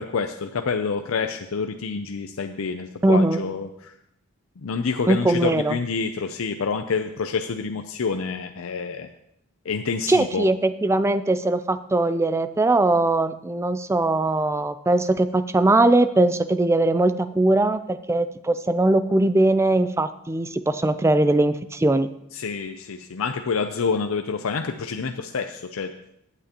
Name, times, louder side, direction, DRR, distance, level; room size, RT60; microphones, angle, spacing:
voice 1, 0.0-3.9 4.6-9.1 9.7-10.5 22.3-25.9, left 5 dB, 70° left, 6 dB, 0.5 m, -27 dB
voice 2, 3.0-3.4 5.1-5.8 10.1-22.1, right 2 dB, 15° right, 12 dB, 0.3 m, -20 dB
15.0 x 9.0 x 2.9 m, 0.78 s
head